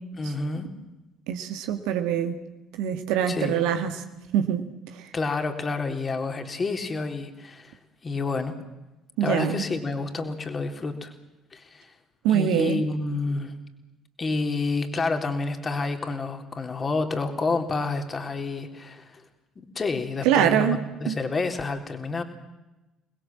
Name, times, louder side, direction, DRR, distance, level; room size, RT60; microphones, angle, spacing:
voice 1, 0.1-0.7 3.3-3.6 5.1-7.7 8.0-8.5 9.2-11.1 11.5-11.9 12.3-13.5 14.2-19.2 19.6-22.2, left 3 dB, 30° left, 6 dB, 3.7 m, -29 dB
voice 2, 1.3-2.4 2.8-4.0 4.3-4.6 4.9-5.1 9.2-9.6 12.2-12.8 20.2-20.8 21.1-21.2, right 9 dB, 65° right, 7 dB, 1.7 m, -24 dB
29.0 x 21.0 x 7.5 m, 1.0 s
figure-of-eight pair, 50°, 0 cm